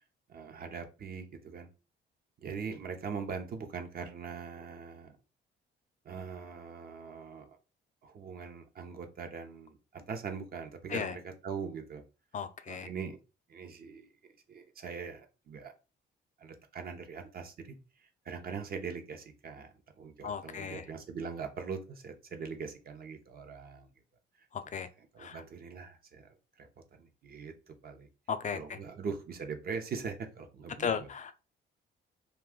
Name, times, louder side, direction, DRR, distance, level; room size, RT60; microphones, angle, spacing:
voice 1, 0.3-1.7 2.4-5.2 6.0-7.6 8.0-12.0 12.7-13.2 13.5-14.1 14.5-15.7 16.4-23.9 24.4-24.5 24.7-28.1 28.5-31.1, right 5 dB, 50° right, 0.7 m, -42 dB
voice 2, 12.3-12.9 20.2-20.8 24.5-24.9 25.2-25.4 28.3-28.8 30.8-31.3, left 7 dB, 40° left, 0.4 m, -35 dB
2.6 x 2.3 x 3.6 m
cardioid pair, 90°, 20 cm